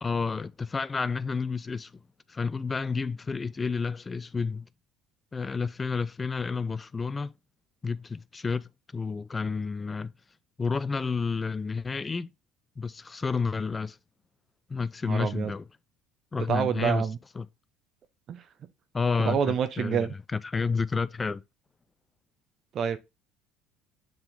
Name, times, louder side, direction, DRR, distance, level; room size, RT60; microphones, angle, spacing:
voice 1, 0.0-1.9 2.3-4.7 5.3-7.3 7.8-10.1 10.6-12.3 12.8-14.0 14.7-15.6 16.3-17.1 17.4-17.5 18.9-21.4, left 4 dB, 25° left, 0.4 m, -30 dB
voice 2, 15.1-15.5 16.5-17.2 18.3-18.4 19.2-20.1 22.7-23.0, right 8 dB, 50° right, 0.8 m, -27 dB
7.1 x 3.8 x 3.5 m
hypercardioid pair, 80°, 0 cm